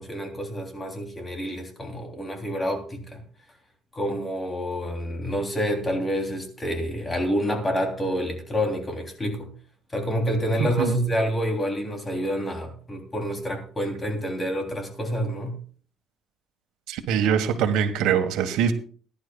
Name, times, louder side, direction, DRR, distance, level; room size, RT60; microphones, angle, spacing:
voice 1, 0.0-3.2 3.9-9.5 9.9-15.6, equal, 15° left, 3 dB, 3.2 m, -28 dB
voice 2, 10.6-11.0 16.9-18.7, right 8 dB, 90° right, 7 dB, 1.5 m, -23 dB
21.0 x 11.0 x 2.3 m, 0.43 s
cardioid pair, 150°, 0 cm